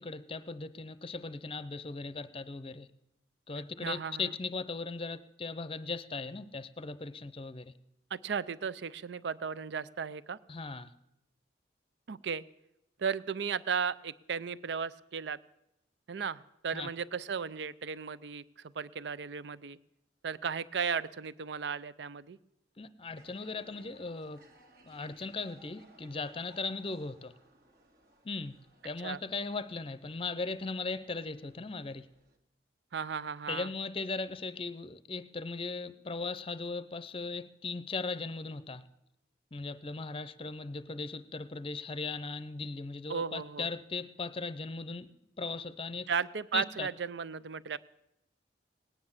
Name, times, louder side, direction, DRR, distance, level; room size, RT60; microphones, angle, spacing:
voice 1, 0.0-2.9 3.5-7.7 10.5-10.9 16.7-16.9 22.8-24.4 24.8-27.3 28.2-28.6 28.8-32.1 33.5-38.8 39.5-45.1 45.4-46.1 46.5-46.9, left 4 dB, 30° left, 0.6 m, -38 dB
voice 2, 3.8-4.2 8.1-10.4 12.1-12.4 13.0-15.4 16.1-19.8 20.2-22.4 29.0-29.2 32.9-33.7 43.1-43.7 46.1-47.8, right 6 dB, 75° right, 0.5 m, -35 dB
sound 1, 23.1-32.4, right 1 dB, 55° right, 1.9 m, -62 dB
18.5 x 9.9 x 7.3 m
head